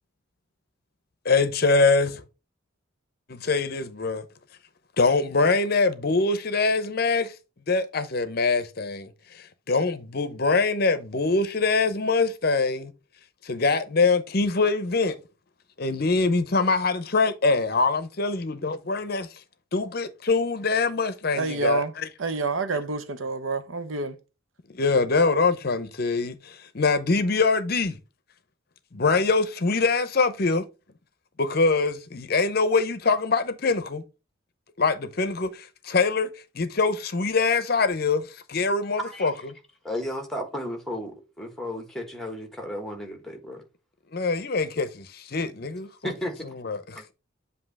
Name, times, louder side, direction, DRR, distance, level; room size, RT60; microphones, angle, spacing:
voice 1, 1.2-2.2 3.3-4.3 5.0-7.3 7.7-12.9 13.4-15.2 15.8-19.3 19.7-22.1 24.7-28.0 28.9-30.6 31.4-34.0 34.8-36.3 36.5-39.3 44.1-46.1 46.4-47.1, left 3 dB, 50° left, 0.7 m, -24 dB
voice 2, 21.4-21.9 22.2-24.2, right 4 dB, 80° right, 0.7 m, -28 dB
voice 3, 39.0-39.3 39.8-43.6 46.0-46.3, left 1 dB, ahead, 1.2 m, -33 dB
7.7 x 2.8 x 4.7 m
head